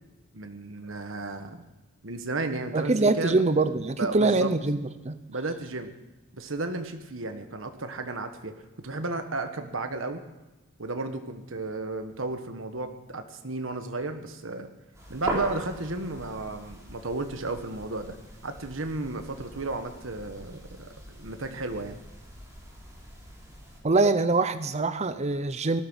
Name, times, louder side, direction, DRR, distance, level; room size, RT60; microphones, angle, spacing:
voice 1, 0.3-1.6 2.0-3.4 4.0-4.5 5.3-5.9 6.3-8.5 8.8-10.2 10.8-14.7 15.1-18.2 18.4-22.0, right 2 dB, 70° right, 7 dB, 1.3 m, -33 dB
voice 2, 2.7-4.8 5.0-5.2 23.8-25.8, right 3 dB, 35° right, 11 dB, 0.7 m, -23 dB
sound 1, 14.9-23.8, right 1 dB, 15° right, 4.2 m, -40 dB
18.0 x 12.5 x 6.2 m, 1.1 s
head